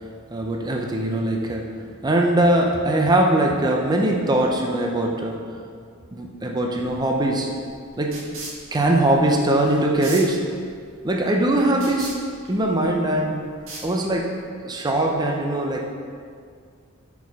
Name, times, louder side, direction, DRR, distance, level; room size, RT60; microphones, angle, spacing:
voice 1, 0.3-1.7 2.0-5.4 6.1-7.5 8.0-8.3 8.7-10.4 11.0-12.2 12.5-13.5 13.8-14.3 14.6-15.9, right 1 dB, 20° right, 1 dB, 0.5 m, -21 dB
sound 1, 6.8-14.4, right 2 dB, 70° right, 1.7 m, -41 dB
6.1 x 4.7 x 5.3 m, 2.1 s
head